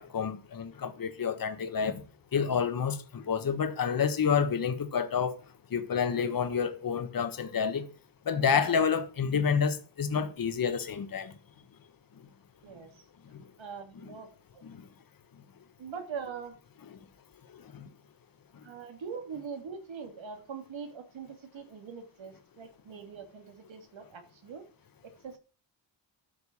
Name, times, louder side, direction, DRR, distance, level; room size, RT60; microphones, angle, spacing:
voice 1, 0.0-2.0 2.3-5.4 5.7-7.9 8.3-11.3 13.3-13.4 14.6-14.8 16.9-17.0 17.5-17.9, left 6 dB, 50° left, 1.3 m, -29 dB
voice 2, 13.6-14.6 15.8-16.6 18.6-24.6 25.2-25.4, right 6 dB, 85° right, 2.9 m, -42 dB
12.5 x 6.8 x 8.6 m
wide cardioid pair, 170°, 45 cm